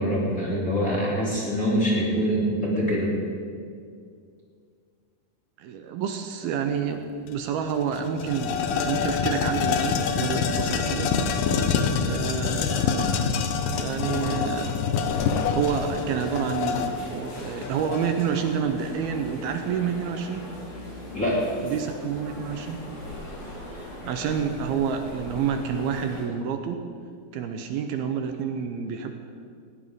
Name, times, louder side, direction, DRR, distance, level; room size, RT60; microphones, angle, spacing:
voice 1, 0.0-3.1 21.1-21.4, equal, 25° left, -6 dB, 2.8 m, -24 dB
voice 2, 5.6-11.1 12.0-13.2 13.7-14.8 15.5-20.4 21.6-22.8 24.0-26.8 27.3-29.1, right 7 dB, 80° right, 6 dB, 2.6 m, -29 dB
sound 1, 7.3-7.4 7.7-18.4, left 6 dB, 75° left, 2.4 m, -26 dB
sound 2, 15.1-26.2, left 1 dB, 45° left, 5.1 m, -39 dB
20.5 x 16.5 x 3.7 m, 2.2 s
omnidirectional pair, 4.6 m